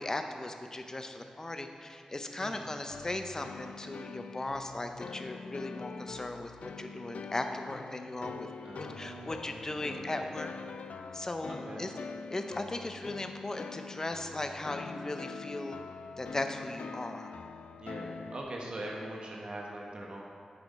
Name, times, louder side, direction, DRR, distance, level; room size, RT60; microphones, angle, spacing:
voice 1, 0.0-8.5 8.7-10.5 11.1-11.9 12.3-15.8 16.2-17.3, left 2 dB, 25° left, 6 dB, 0.6 m, -37 dB
sound 1, 2.9-18.4, left 5 dB, 80° left, 0.3 m, -44 dB
voice 2, 8.6-10.4 11.5-11.9 17.8-20.2, right 1 dB, 50° right, -2 dB, 1.2 m, -42 dB
8.0 x 6.8 x 4.2 m, 2.3 s
wide cardioid pair, 115°, 2 cm